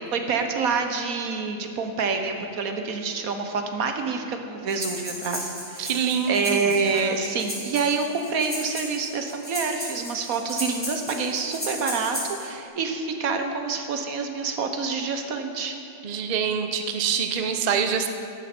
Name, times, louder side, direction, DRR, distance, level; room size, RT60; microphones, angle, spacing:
voice 1, 0.1-5.9 6.3-15.7, right 4 dB, 80° right, 5 dB, 1.4 m, -27 dB
Breathing, 4.7-12.5, equal, 10° left, 3.3 m, -35 dB
voice 2, 5.8-7.2 16.0-18.1, right 7 dB, 40° right, 6 dB, 0.6 m, -26 dB
13.5 x 11.0 x 4.4 m, 2.5 s
omnidirectional pair, 1.5 m